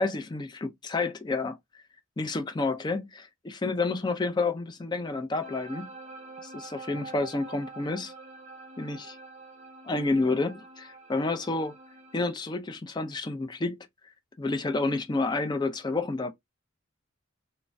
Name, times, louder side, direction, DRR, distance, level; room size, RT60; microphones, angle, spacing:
voice 1, 0.0-1.6 2.2-5.9 6.4-8.1 8.8-9.2 9.8-11.7 12.1-13.9 14.4-16.3, left 3 dB, 20° left, 0.3 m, -29 dB
sound 1, 5.4-12.3, right 3 dB, 35° right, 0.6 m, -46 dB
3.1 x 2.1 x 2.5 m
head